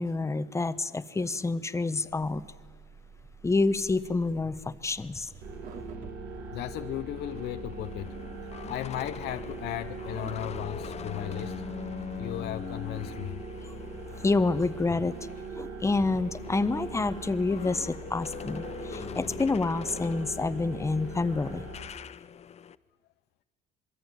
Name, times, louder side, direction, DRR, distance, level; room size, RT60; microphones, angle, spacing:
voice 1, 0.0-2.4 3.4-5.3 14.2-15.1 15.6-21.6, left 3 dB, 15° left, 13 dB, 1.1 m, -28 dB
sound 1, 2.1-11.3, right 5 dB, 50° right, 2.6 m, -50 dB
sound 2, 5.4-21.8, right 3 dB, 75° right, 6.2 m, -41 dB
voice 2, 6.5-8.2 8.7-11.6 12.2-13.4, left 14 dB, 75° left, 9 dB, 0.7 m, -36 dB
sound 3, 7.2-15.6 15.9-22.7, left 8 dB, 40° left, 0.7 m, -43 dB
27.0 x 22.0 x 9.3 m, 1.5 s
cardioid pair, 110°, 17 cm